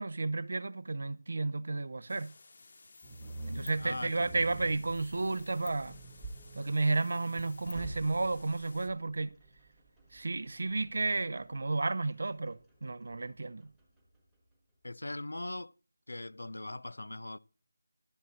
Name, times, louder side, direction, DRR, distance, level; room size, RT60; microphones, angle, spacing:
voice 1, 0.0-2.3 3.5-6.0 6.5-9.4 10.1-13.7, right 3 dB, 50° right, 0.4 m, -32 dB
sound 1, 2.1-8.9, left 3 dB, 35° left, 0.9 m, -54 dB
sound 2, 3.0-14.2, right 2 dB, ahead, 1.1 m, -48 dB
voice 2, 3.8-4.3 14.8-15.7 16.1-17.4, left 2 dB, 85° left, 0.4 m, -40 dB
11.5 x 7.4 x 4.1 m
figure-of-eight pair, 175°, 0 cm